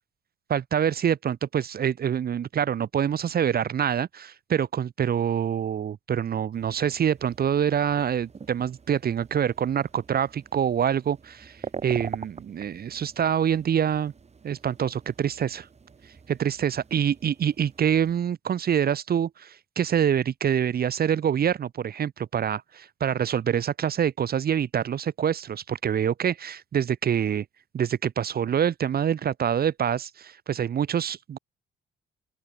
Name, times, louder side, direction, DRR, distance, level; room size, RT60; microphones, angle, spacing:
voice 1, 0.5-14.1 14.4-15.7 16.3-27.4 27.7-31.4, right 8 dB, 50° right, 1.1 m, -26 dB
sound 1, 6.5-18.2, right 5 dB, 35° right, 2.0 m, -44 dB
open air
cardioid pair, 90°, 20 cm